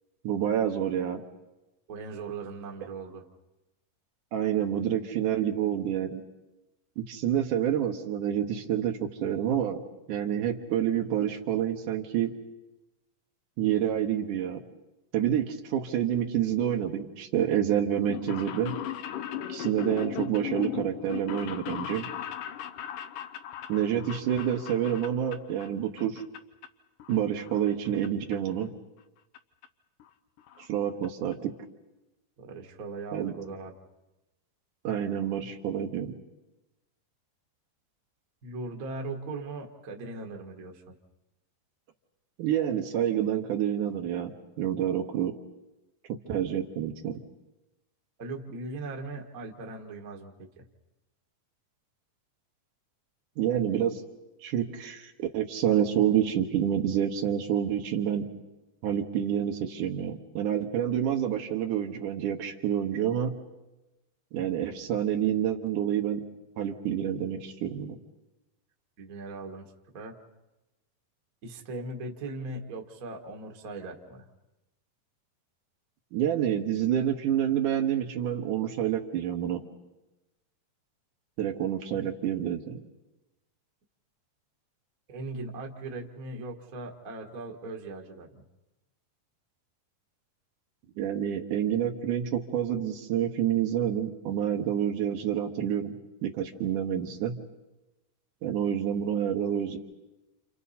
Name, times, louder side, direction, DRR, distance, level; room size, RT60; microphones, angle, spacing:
voice 1, 0.2-1.2 4.3-6.2 7.0-9.8 10.1-12.3 13.6-14.6 15.1-18.8 19.5-22.1 23.7-26.2 27.1-28.7 30.6-31.5 33.1-33.4 34.8-36.1 42.4-45.3 46.1-47.2 53.4-54.0 54.4-58.3 58.8-63.4 64.3-66.2 66.6-68.0 76.1-79.6 81.4-82.8 91.0-97.4 98.4-99.8, right 10 dB, 70° right, 4 dB, 2.6 m, -28 dB
voice 2, 1.9-3.3 23.8-24.0 32.4-33.7 38.4-40.9 48.2-50.6 69.0-69.6 69.9-70.2 71.4-74.3 85.1-88.4, right 3 dB, 40° right, 2 dB, 1.5 m, -39 dB
sound 1, 17.9-25.7 26.0-26.7 27.0-28.1 28.3-28.4 29.3-29.4 29.6-29.7 30.0-30.1 30.4-30.7 31.0-31.1 31.3-31.4, left 10 dB, 80° left, 2.5 m, -37 dB
29.5 x 29.0 x 4.2 m, 1.0 s
omnidirectional pair, 3.9 m